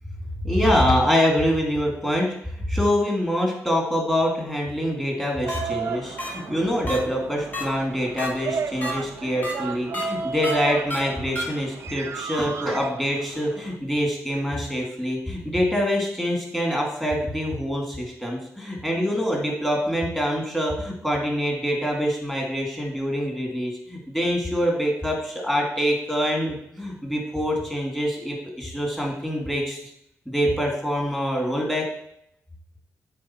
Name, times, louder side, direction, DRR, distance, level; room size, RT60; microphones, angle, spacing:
voice 1, 0.4-29.8 30.3-31.9, equal, 10° left, -2 dB, 2.3 m, -25 dB
sound 1, 5.4-13.8, right 5 dB, 50° right, 0.4 m, -34 dB
sound 2, 5.5-5.6 6.2-6.3 6.9-7.0 7.5-7.6 8.2-8.3 8.8-8.9 9.4-9.5 9.9-10.0 10.4-10.5 10.9-11.0 11.4-11.5, equal, 30° left, 1.7 m, -29 dB
8.6 x 3.9 x 4.4 m, 0.73 s
cardioid pair, 95°, 6 cm